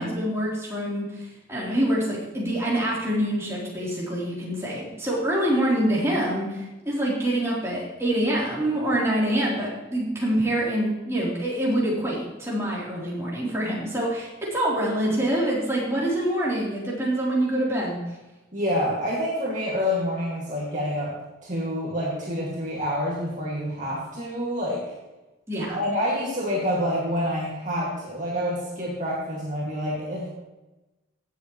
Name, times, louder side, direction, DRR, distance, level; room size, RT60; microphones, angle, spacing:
voice 1, 0.0-18.0 25.5-25.8, right 1 dB, 15° right, -6 dB, 3.4 m, -25 dB
voice 2, 18.5-21.1 21.4-24.9 25.6-30.3, equal, 40° right, -5 dB, 2.1 m, -27 dB
16.0 x 7.7 x 3.1 m, 1.1 s
head